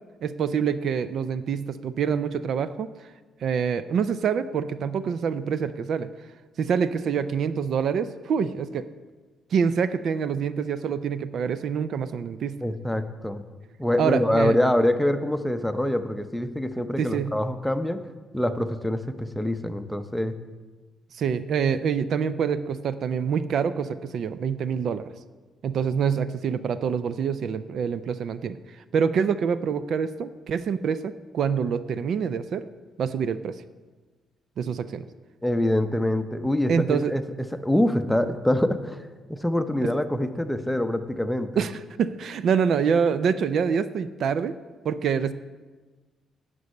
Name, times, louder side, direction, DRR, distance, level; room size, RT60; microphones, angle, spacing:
voice 1, 0.2-2.9 3.4-6.1 6.6-8.8 9.5-12.6 14.0-14.5 17.0-17.3 21.1-25.1 25.6-28.6 28.9-32.7 33.0-33.6 34.6-35.1 36.7-37.1 39.8-39.9 41.6-44.6 44.8-45.3, right 6 dB, 65° right, 13 dB, 0.4 m, -26 dB
voice 2, 12.6-13.4 13.8-18.0 18.3-20.4 35.4-37.2 37.5-41.6, left 1 dB, 5° left, 9 dB, 0.7 m, -25 dB
9.7 x 5.4 x 8.1 m, 1.3 s
cardioid pair, 90°, 0 cm